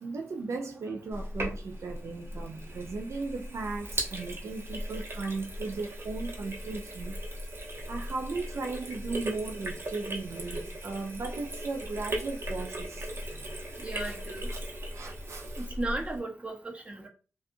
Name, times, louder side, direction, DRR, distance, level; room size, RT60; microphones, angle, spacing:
voice 1, 0.0-7.2 7.9-13.1 14.1-14.2 14.5-14.6 14.9-15.7, right 3 dB, 70° right, 0.4 m, -37 dB
Sink (filling or washing), 1.1-16.2, right 1 dB, 55° right, 0.8 m, -38 dB
voice 2, 13.8-14.5 15.6-17.1, right 2 dB, 25° right, 0.8 m, -35 dB
2.5 x 2.3 x 2.7 m
cardioid pair, 75°, 5 cm